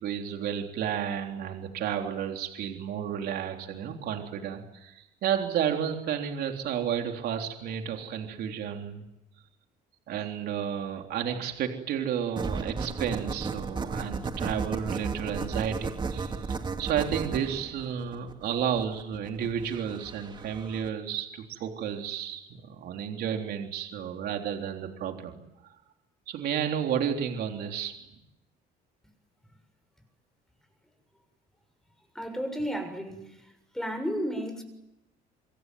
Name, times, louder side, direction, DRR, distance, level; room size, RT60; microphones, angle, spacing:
voice 1, 0.0-9.1 10.1-25.4 26.3-27.9, right 8 dB, 70° right, 3 dB, 3.6 m, -32 dB
sound 1, 12.4-20.9, right 4 dB, 25° right, 2.5 m, -34 dB
voice 2, 32.2-33.5 33.7-34.6, equal, 5° left, 7 dB, 7.0 m, -33 dB
28.0 x 23.0 x 9.4 m, 0.91 s
cardioid pair, 110°, 17 cm